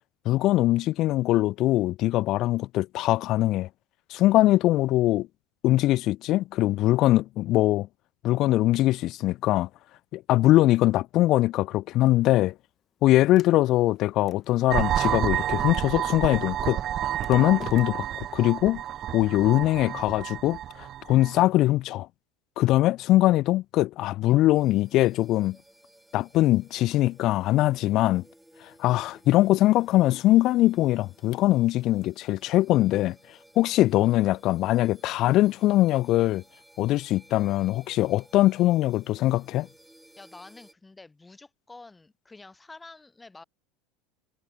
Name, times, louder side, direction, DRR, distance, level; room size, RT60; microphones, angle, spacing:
voice 1, 0.3-3.7 4.1-5.3 5.6-7.9 8.2-9.7 10.1-12.5 13.0-16.8 17.3-18.8 19.1-20.6 21.1-22.1 22.6-25.6 26.1-28.2 28.8-33.2 33.6-36.4 36.8-39.7, left 16 dB, 55° left, 0.6 m, -22 dB
Sliding door, 12.0-22.0, left 9 dB, 40° left, 5.7 m, -54 dB
sound 1, 14.7-21.4, right 11 dB, 45° right, 1.6 m, -30 dB
sound 2, 24.5-40.7, right 1 dB, 5° right, 4.1 m, -57 dB
voice 2, 40.2-43.4, left 3 dB, 15° left, 3.9 m, -48 dB
supercardioid pair, 105°, 0 cm